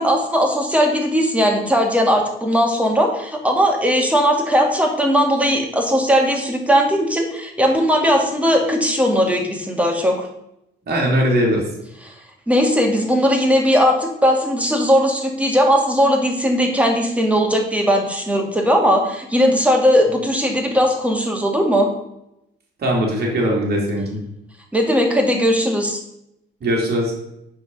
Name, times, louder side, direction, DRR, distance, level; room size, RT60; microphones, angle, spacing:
voice 1, 0.0-10.3 12.1-12.2 12.5-21.9 24.7-26.0, equal, 5° right, 2 dB, 2.3 m, -18 dB
voice 2, 10.9-11.6 22.8-24.2 26.6-27.1, equal, 55° right, -1 dB, 2.9 m, -20 dB
9.3 x 5.3 x 5.4 m, 0.82 s
cardioid pair, 90°, 20 cm